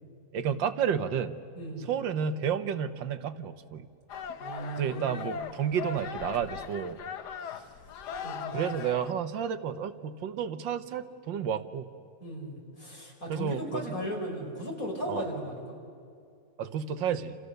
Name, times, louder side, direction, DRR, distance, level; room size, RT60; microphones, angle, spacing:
voice 1, 0.3-1.4 1.9-3.9 4.8-7.0 8.5-11.9 13.3-14.0 15.1-15.2 16.6-17.4, right 8 dB, 75° right, 11 dB, 1.8 m, -31 dB
voice 2, 1.6-1.9 4.4-5.4 7.5-7.6 8.2-8.6 12.2-15.7, equal, 45° left, -1 dB, 5.5 m, -36 dB
sound 1, 4.1-9.1, left 6 dB, 65° left, 1.5 m, -39 dB
29.5 x 28.0 x 6.7 m, 2.4 s
omnidirectional pair, 2.1 m